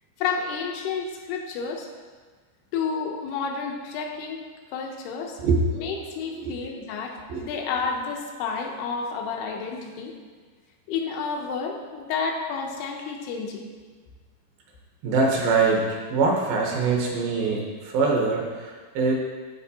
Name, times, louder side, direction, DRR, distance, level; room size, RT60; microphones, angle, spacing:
voice 1, 0.2-1.9 2.7-4.4 4.7-5.4 5.7-10.1 10.9-13.7, left 5 dB, 80° left, 2 dB, 2.7 m, -30 dB
voice 2, 15.0-15.8 16.1-19.1, right 4 dB, 75° right, -1 dB, 2.5 m, -23 dB
13.0 x 4.5 x 2.8 m, 1.5 s
omnidirectional pair, 4.6 m